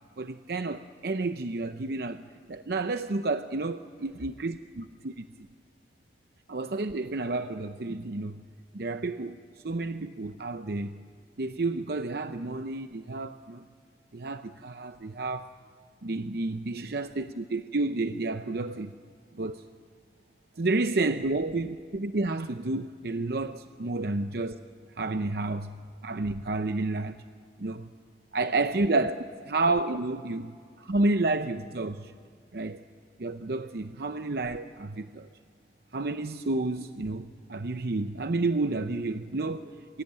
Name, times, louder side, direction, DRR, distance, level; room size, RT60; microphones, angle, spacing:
voice 1, 0.2-2.2 2.5-5.2 6.5-8.4 8.7-11.0 11.4-13.6 14.1-15.5 16.0-18.9 19.3-19.6 20.6-24.6 25.0-27.2 27.6-27.9 28.3-29.2 29.4-32.1 32.5-32.8 33.2-35.3 35.9-40.0, right 2 dB, 60° right, 9 dB, 0.7 m, -30 dB
27.5 x 23.0 x 8.9 m, 2.1 s
head